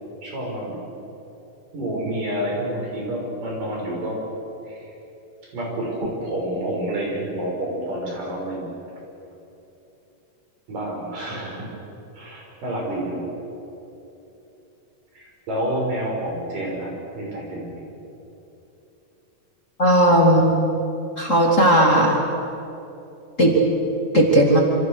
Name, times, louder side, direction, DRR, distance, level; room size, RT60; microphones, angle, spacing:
voice 1, 0.2-0.8 1.7-4.2 4.7-4.9 5.4-8.7 10.7-11.7 12.1-13.2 15.1-17.9, right 1 dB, 75° right, -2 dB, 7.9 m, -29 dB
voice 2, 19.8-20.5 21.2-22.1 23.4-23.6 24.1-24.6, right 1 dB, 25° left, -1 dB, 2.7 m, -16 dB
27.5 x 27.0 x 6.8 m, 2.9 s
omnidirectional pair, 3.8 m